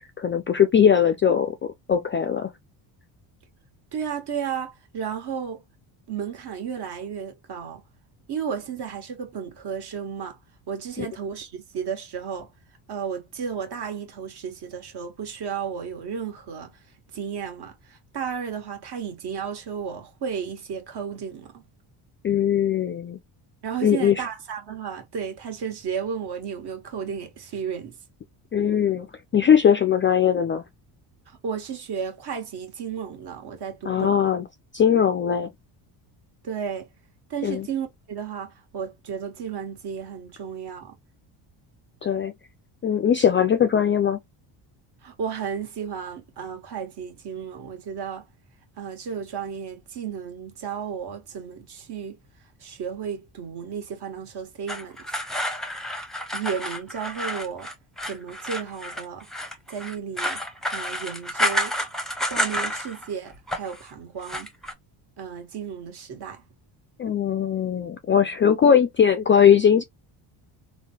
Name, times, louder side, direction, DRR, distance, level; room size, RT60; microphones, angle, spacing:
voice 1, 0.2-1.5 1.9-2.5 11.0-11.1 22.2-23.2 23.8-24.2 28.5-29.1 29.3-30.6 33.9-34.4 34.7-35.5 37.4-37.7 42.0-42.3 42.8-44.2 67.0-69.8, left 8 dB, 30° left, 0.3 m, -20 dB
voice 2, 3.9-5.6 6.1-7.8 8.3-10.4 10.7-12.5 12.9-16.7 17.1-21.6 23.6-28.0 31.3-34.2 36.4-36.9 37.3-40.9 45.0-48.3 48.8-52.2 52.6-55.0 56.3-57.7 58.0-59.3 59.7-60.4 60.7-61.7 62.3-64.5 65.2-66.4, right 7 dB, 50° right, 1.6 m, -33 dB
sound 1, 54.7-63.1 63.3-63.8 64.2-64.7, equal, ahead, 0.7 m, -29 dB
3.7 x 2.2 x 2.8 m
cardioid pair, 105°, 50 cm